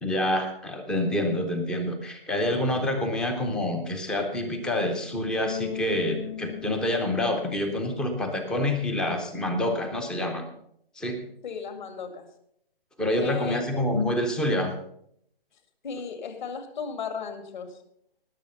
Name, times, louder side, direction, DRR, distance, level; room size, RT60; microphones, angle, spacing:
voice 1, 0.0-10.5 11.0-11.2 13.0-14.7, left 1 dB, 5° left, 6 dB, 0.5 m, -27 dB
Bass guitar, 5.5-8.6, left 10 dB, 25° left, 0.9 m, -38 dB
voice 2, 11.4-12.3 13.2-13.9 15.8-17.8, left 6 dB, 50° left, 8 dB, 2.3 m, -36 dB
19.0 x 6.8 x 5.5 m, 0.72 s
figure-of-eight pair, 145°, 30 cm